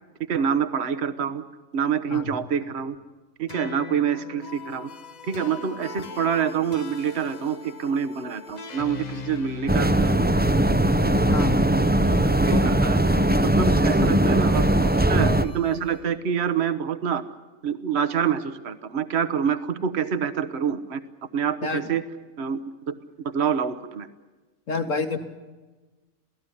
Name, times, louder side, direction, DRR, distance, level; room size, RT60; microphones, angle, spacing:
voice 1, 0.3-1.4 1.7-3.0 3.4-4.9 5.3-10.2 12.2-13.0 13.4-17.2 17.6-21.0 21.3-22.0 22.4-22.6 22.9-23.0 23.2-24.1, right 7 dB, 55° right, 11 dB, 1.4 m, -26 dB
sound 1, 3.5-16.0, left 5 dB, 35° left, 0.9 m, -39 dB
sound 2, 9.7-15.5, right 1 dB, 10° right, 0.6 m, -20 dB
voice 2, 11.3-11.6 12.5-12.6 21.6-21.8 24.7-25.2, left 4 dB, 70° left, 7 dB, 2.3 m, -28 dB
28.5 x 17.5 x 9.9 m, 1.2 s
omnidirectional pair, 1.4 m